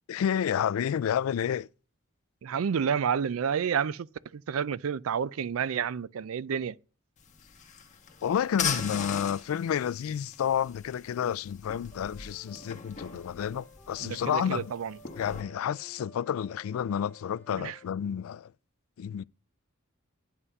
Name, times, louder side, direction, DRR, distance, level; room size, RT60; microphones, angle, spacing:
voice 1, 0.1-1.7 8.2-14.7 15.2-18.5 19.0-19.2, left 8 dB, 85° left, 0.3 m, -30 dB
voice 2, 2.4-6.8 14.0-15.0 17.6-17.8, right 7 dB, 85° right, 0.4 m, -30 dB
sound 1, 7.2-15.4, left 7 dB, 35° left, 1.2 m, -39 dB
sound 2, 11.9-17.8, right 1 dB, 10° left, 2.0 m, -54 dB
9.6 x 5.7 x 5.3 m
head